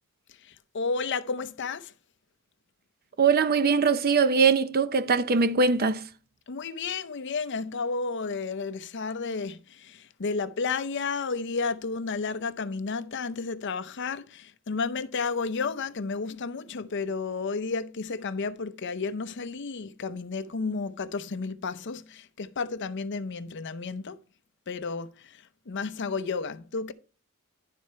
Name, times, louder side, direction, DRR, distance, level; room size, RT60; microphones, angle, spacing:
voice 1, 0.4-1.9 6.5-24.2 24.7-26.9, left 4 dB, 60° left, 0.6 m, -32 dB
voice 2, 3.2-6.1, right 5 dB, 45° right, 0.6 m, -22 dB
11.5 x 4.2 x 4.5 m
head